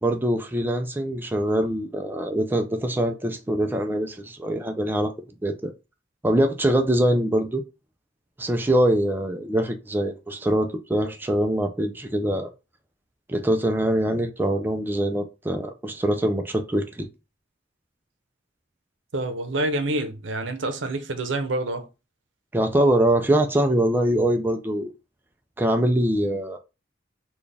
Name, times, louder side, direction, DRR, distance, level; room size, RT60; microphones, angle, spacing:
voice 1, 0.0-5.1 5.4-5.7 6.2-7.6 8.4-12.5 13.3-17.1 22.5-24.9 25.6-26.6, right 1 dB, 10° right, 0.4 m, -23 dB
voice 2, 19.1-21.9, right 2 dB, 85° right, 0.7 m, -27 dB
4.1 x 2.3 x 3.3 m
head